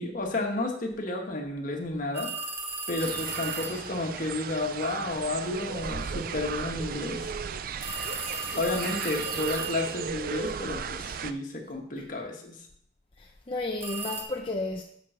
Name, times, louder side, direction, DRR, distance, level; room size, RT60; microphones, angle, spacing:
voice 1, 0.0-2.3 2.9-7.3 8.5-12.6, left 2 dB, 45° left, 1.5 m, -31 dB
sound 1, 2.1-3.9 7.8-10.1 13.8-14.2, right 3 dB, 10° right, 1.0 m, -35 dB
sound 2, 3.0-11.3, right 6 dB, 50° right, 0.4 m, -36 dB
voice 2, 13.2-14.8, left 2 dB, 30° left, 0.6 m, -33 dB
8.5 x 5.5 x 5.7 m
head